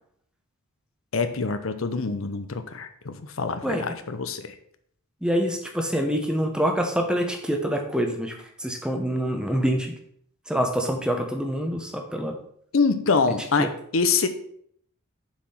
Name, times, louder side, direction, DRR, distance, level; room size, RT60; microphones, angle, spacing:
voice 1, 1.1-4.5 12.7-14.3, left 4 dB, 65° left, 9 dB, 0.7 m, -25 dB
voice 2, 5.2-9.9 10.5-12.4 13.6-13.7, equal, 5° right, 3 dB, 0.9 m, -26 dB
7.1 x 4.9 x 5.6 m, 0.65 s
head